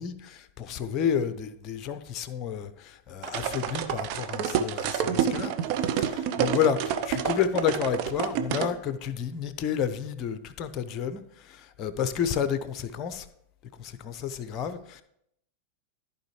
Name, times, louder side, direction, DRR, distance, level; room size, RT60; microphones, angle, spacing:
voice 1, 0.0-5.5 6.4-13.3 13.8-15.0, left 8 dB, 35° left, 12 dB, 0.7 m, -30 dB
sound 1, 3.2-8.7, right 9 dB, 45° right, 0.7 m, -28 dB
14.5 x 5.0 x 3.1 m, 0.74 s
figure-of-eight pair, 90°, 0 cm